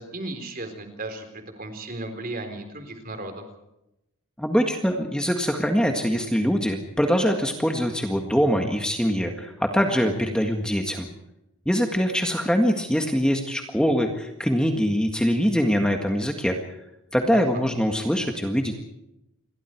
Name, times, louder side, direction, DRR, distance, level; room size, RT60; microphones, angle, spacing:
voice 1, 0.0-3.5 17.3-17.6, right 2 dB, 40° right, 6 dB, 4.0 m, -35 dB
voice 2, 4.4-11.1 11.7-16.6 17.1-18.8, equal, 5° left, 3 dB, 1.8 m, -23 dB
28.5 x 22.5 x 4.6 m, 0.88 s
head